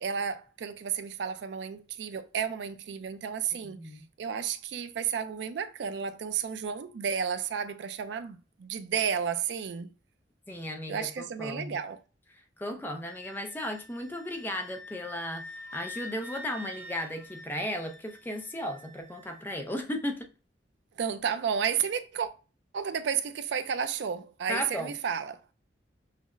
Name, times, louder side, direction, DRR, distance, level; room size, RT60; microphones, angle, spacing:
voice 1, 0.0-3.8 4.2-9.9 10.9-12.0 21.0-22.3 22.7-25.4, right 7 dB, 65° right, 0.4 m, -32 dB
voice 2, 3.5-4.1 10.5-11.8 12.6-15.4 15.7-20.3 24.5-24.9, left 1 dB, 10° left, 0.5 m, -35 dB
Wind instrument woodwind instrument, 13.0-19.4, left 2 dB, 50° left, 1.6 m, -46 dB
5.7 x 2.1 x 2.3 m
head